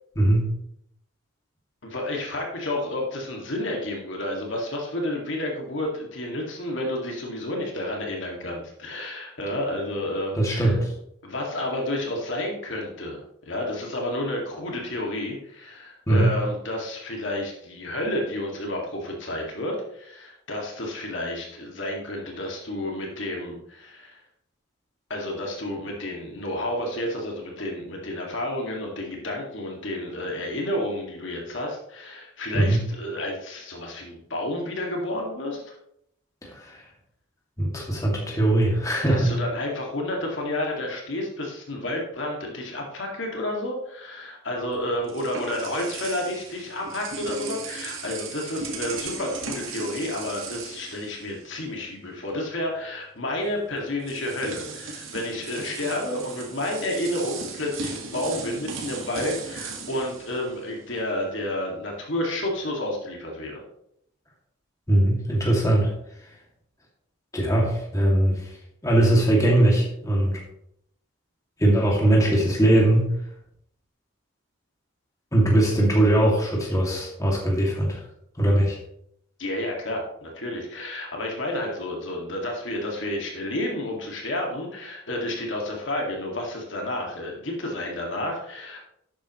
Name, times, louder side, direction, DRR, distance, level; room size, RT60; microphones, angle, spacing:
voice 1, 1.8-10.8 11.2-13.2 13.5-24.2 25.1-35.8 39.1-63.6 79.4-88.8, left 1 dB, 65° left, 0 dB, 2.2 m, -30 dB
voice 2, 10.4-10.9 16.1-16.3 32.5-32.8 36.5-36.8 37.6-39.3 64.9-65.9 67.3-68.5 68.8-70.4 71.6-73.1 75.3-78.0 78.4-78.8, right 1 dB, 15° left, -3 dB, 2.3 m, -20 dB
sound 1, 44.6-51.8 52.1-52.3 53.4-53.5 54.0-61.2, right 4 dB, 75° right, 1.7 m, -37 dB
12.0 x 8.5 x 3.1 m, 0.74 s
head